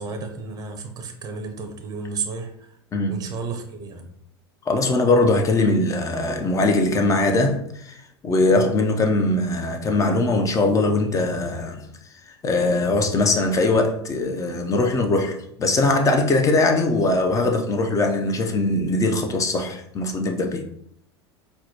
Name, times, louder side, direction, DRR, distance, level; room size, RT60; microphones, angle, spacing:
voice 1, 0.0-2.7 3.1-4.1, right 4 dB, 25° right, 0.6 m, -32 dB
voice 2, 2.9-3.2 4.7-8.0 8.2-11.9 12.4-20.6, left 2 dB, 25° left, 0.5 m, -21 dB
4.1 x 2.2 x 2.8 m
figure-of-eight pair, 80°, 14 cm